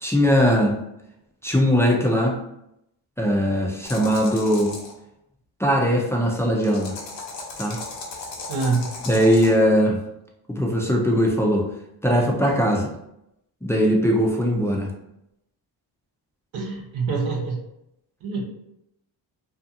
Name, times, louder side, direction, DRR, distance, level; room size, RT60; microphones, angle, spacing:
voice 1, 0.0-0.8 1.4-2.4 3.2-4.8 5.6-7.0 7.6-7.8 9.1-10.0 10.5-11.7 12.0-12.9 13.6-14.9, equal, 5° left, -1 dB, 0.4 m, -20 dB
sound 1, 3.8-4.9 6.6-9.5, left 3 dB, 70° left, 0.9 m, -36 dB
voice 2, 8.5-8.9 16.5-17.6 18.2-18.4, right 4 dB, 75° right, 0 dB, 0.9 m, -25 dB
2.5 x 2.4 x 2.7 m, 0.82 s
cardioid pair, 80°, 46 cm